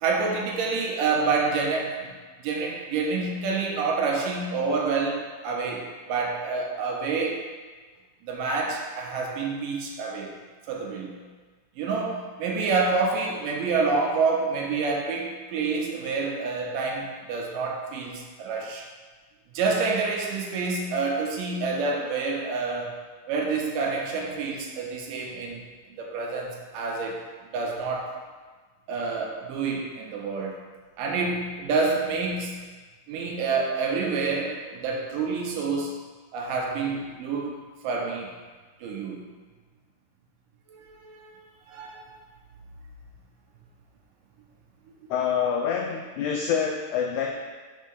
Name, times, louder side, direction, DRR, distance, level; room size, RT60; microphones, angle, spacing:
voice 1, 0.0-2.1 2.4-7.4 8.2-10.3 10.7-11.2 11.8-18.9 19.5-22.9 23.3-25.6 26.0-27.2 27.5-28.1 28.9-30.5 31.0-32.5 33.1-35.9 36.3-37.6 37.8-38.3 38.8-39.3 40.7-42.0 44.9-45.1, right 4 dB, 75° right, 0 dB, 2.3 m, -28 dB
voice 2, 45.1-47.3, left 7 dB, 90° left, 1 dB, 1.7 m, -26 dB
6.5 x 3.7 x 5.3 m, 1.4 s
omnidirectional pair, 4.1 m